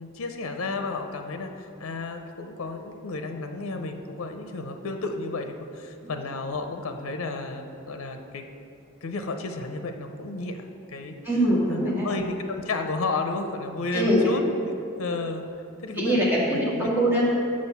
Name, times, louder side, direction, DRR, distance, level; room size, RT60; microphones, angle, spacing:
voice 1, 0.0-8.5 9.0-11.2 11.7-14.4 15.0-15.5 15.8-16.2 16.7-16.9, left 3 dB, 75° left, 6 dB, 0.6 m, -32 dB
voice 2, 11.2-12.1 13.9-14.3 16.0-17.2, equal, 10° right, -7 dB, 1.8 m, -23 dB
6.3 x 6.2 x 5.7 m, 2.7 s
head